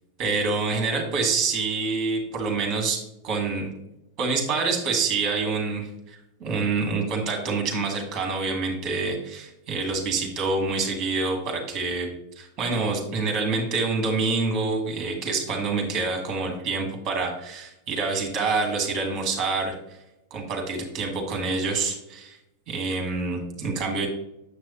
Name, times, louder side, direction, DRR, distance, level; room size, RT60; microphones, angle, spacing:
voice 1, 0.2-3.7 4.2-19.8 20.3-22.4 22.7-24.1, right 4 dB, 30° right, 2 dB, 1.9 m, -27 dB
7.1 x 6.0 x 3.0 m, 0.88 s
figure-of-eight pair, 90°, 0 cm